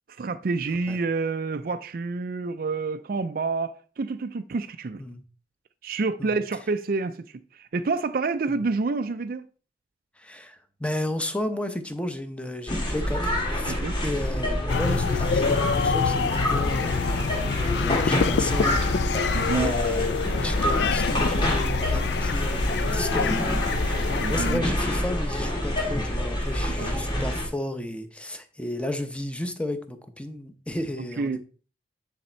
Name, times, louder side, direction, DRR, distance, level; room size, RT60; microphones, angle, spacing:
voice 1, 0.2-5.0 5.8-9.5 13.7-14.0 19.3-19.7 22.9-23.0 24.2-24.6 26.8-26.9 31.2-31.4, right 4 dB, 50° right, 0.4 m, -28 dB
voice 2, 10.2-20.1 20.4-31.4, left 1 dB, 5° left, 0.7 m, -33 dB
sound 1, 12.7-27.5, left 1 dB, 25° left, 1.7 m, -27 dB
sound 2, 14.7-24.6, left 5 dB, 65° left, 0.4 m, -26 dB
9.5 x 4.2 x 4.4 m
head